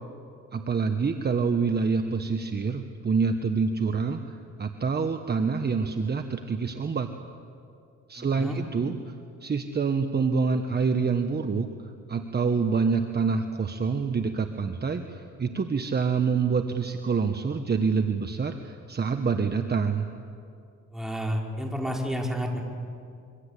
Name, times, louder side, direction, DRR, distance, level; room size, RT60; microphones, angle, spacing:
voice 1, 0.5-7.1 8.1-9.1 9.4-11.7 12.1-20.1, right 5 dB, 35° right, 6 dB, 1.4 m, -26 dB
voice 2, 8.2-8.6 20.9-22.6, equal, ahead, 0 dB, 5.3 m, -30 dB
26.5 x 24.5 x 8.5 m, 2.4 s
cardioid pair, 90°, 30 cm